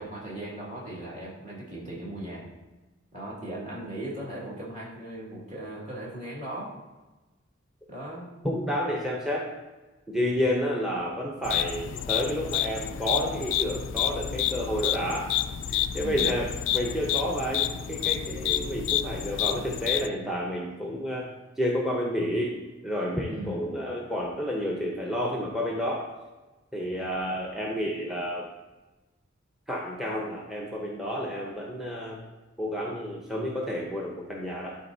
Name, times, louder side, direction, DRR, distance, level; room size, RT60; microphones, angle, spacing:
voice 1, 0.0-2.5 3.1-6.8 7.9-8.4 15.9-16.4 23.2-23.7, right 1 dB, 40° right, -5 dB, 2.1 m, -38 dB
voice 2, 8.4-9.5 10.1-15.4 15.7-16.5 16.7-21.3 21.6-22.6 22.8-26.1 26.7-28.5 29.7-32.2 32.6-34.8, equal, ahead, -2 dB, 0.7 m, -30 dB
sound 1, 11.4-20.1, left 11 dB, 65° left, 0.3 m, -29 dB
11.5 x 4.3 x 2.7 m, 1.2 s
head